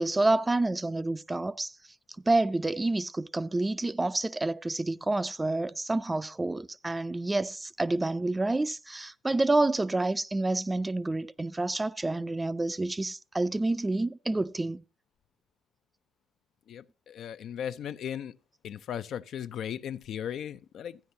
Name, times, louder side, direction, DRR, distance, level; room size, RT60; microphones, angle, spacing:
voice 1, 0.0-1.7 2.3-14.8, right 2 dB, 15° right, 0.4 m, -28 dB
voice 2, 16.7-18.4 18.6-21.0, left 9 dB, 70° left, 0.4 m, -37 dB
13.0 x 9.5 x 2.7 m
cardioid pair, 90°, 0 cm